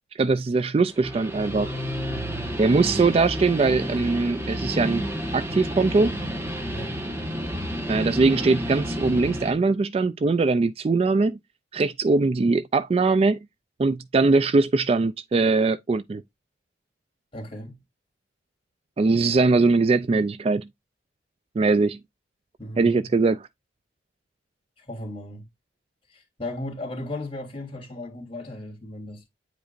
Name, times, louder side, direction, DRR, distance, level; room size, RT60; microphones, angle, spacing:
voice 1, 0.2-1.7 2.6-5.0 5.3-6.2 7.9-11.4 11.7-13.4 13.8-16.2 19.0-20.7 21.6-22.0 22.8-23.4, right 3 dB, 30° right, 0.3 m, -21 dB
Guitar, 0.8-9.6, equal, 15° right, 1.2 m, -31 dB
voice 2, 2.8-3.2 6.7-7.0 17.3-17.8 20.0-20.1 22.6-23.0 24.8-25.5 26.1-29.3, left 1 dB, 30° left, 3.3 m, -36 dB
9.1 x 5.0 x 2.5 m
head